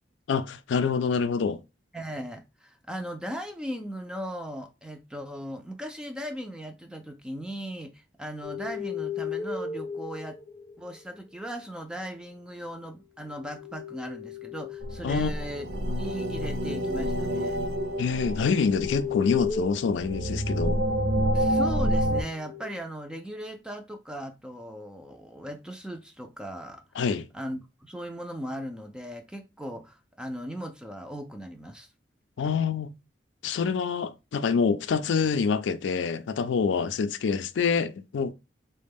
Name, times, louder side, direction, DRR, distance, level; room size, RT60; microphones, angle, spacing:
voice 1, 0.3-1.6 15.0-15.3 18.0-20.8 27.0-27.3 32.4-32.9 33.4-38.3, left 5 dB, 90° left, 0.4 m, -26 dB
voice 2, 1.9-10.4 10.8-15.7 16.0-17.6 21.3-26.8 27.3-31.9, equal, 5° right, 0.3 m, -38 dB
sound 1, 8.4-11.2 13.3-21.0 22.3-22.8, left 7 dB, 30° left, 0.6 m, -37 dB
sound 2, 14.8-22.2, equal, 65° right, 0.6 m, -28 dB
4.0 x 2.1 x 3.4 m
head